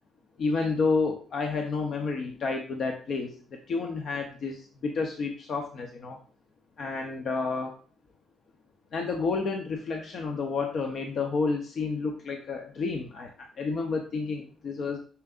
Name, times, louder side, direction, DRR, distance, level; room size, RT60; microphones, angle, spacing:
voice 1, 0.4-6.2 6.8-7.8 8.9-15.0, left 4 dB, 60° left, 3 dB, 0.8 m, -30 dB
7.2 x 5.8 x 2.5 m, 0.41 s
cardioid pair, 90°, 0 cm